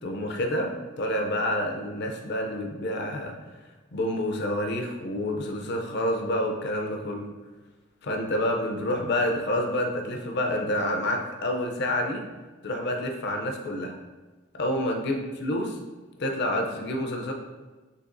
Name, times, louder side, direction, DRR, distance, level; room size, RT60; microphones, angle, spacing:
voice 1, 0.0-3.3 3.9-7.3 8.0-12.2 12.6-13.9 14.5-15.8 16.2-17.3, left 1 dB, 60° left, 2 dB, 0.5 m, -28 dB
6.6 x 2.8 x 2.6 m, 1.2 s
head